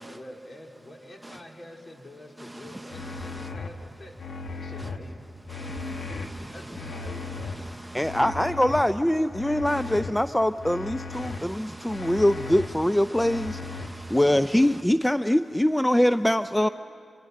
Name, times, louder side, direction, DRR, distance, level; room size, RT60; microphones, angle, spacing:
voice 1, 0.0-4.2 4.5-5.3 6.4-7.8, left 1 dB, 50° left, 3.1 m, -46 dB
sound 1, 2.9-3.7 4.2-5.0 5.5-6.3 6.8-7.5 8.0-8.8 9.3-10.1 10.6-11.4 11.9-12.7 13.2-13.9, left 4 dB, 80° left, 1.6 m, -36 dB
voice 2, 3.1-3.5 4.8-4.9 5.5-8.2 9.6-10.0 11.1-12.2 12.8-14.8, right 1 dB, 10° right, 0.8 m, -43 dB
voice 3, 7.9-13.6 14.1-16.7, left 1 dB, 10° left, 0.5 m, -23 dB
26.5 x 23.0 x 6.6 m
cardioid pair, 40°, 0 cm